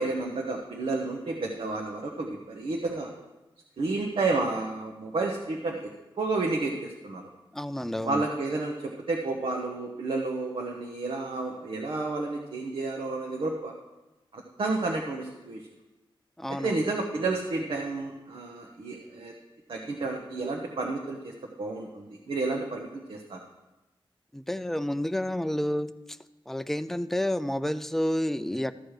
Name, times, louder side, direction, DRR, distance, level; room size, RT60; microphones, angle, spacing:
voice 1, 0.0-3.1 3.8-5.9 6.2-7.3 8.0-13.7 14.3-15.6 16.5-19.3 19.7-21.3 21.6-23.4, right 3 dB, 70° right, 1 dB, 1.0 m, -31 dB
voice 2, 7.5-8.2 16.4-16.9 24.3-26.2 26.5-28.7, left 1 dB, 5° left, 11 dB, 0.4 m, -30 dB
14.0 x 6.2 x 4.8 m, 1.1 s
wide cardioid pair, 135°, 9 cm